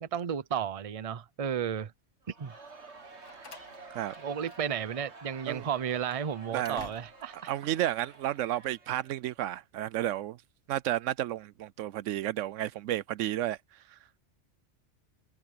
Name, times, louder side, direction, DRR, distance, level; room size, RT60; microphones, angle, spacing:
voice 1, 0.0-1.9 2.4-2.5 4.2-7.5, right 8 dB, 35° right, 0.7 m, -33 dB
Crowd, 2.2-9.5, right 3 dB, 65° right, 2.4 m, -51 dB
Slam, 2.9-4.9 5.2-5.3 5.8-7.4, left 4 dB, 80° left, 2.0 m, -51 dB
voice 2, 7.5-10.4 10.7-14.0, right 13 dB, 85° right, 0.9 m, -32 dB
omnidirectional pair, 1.2 m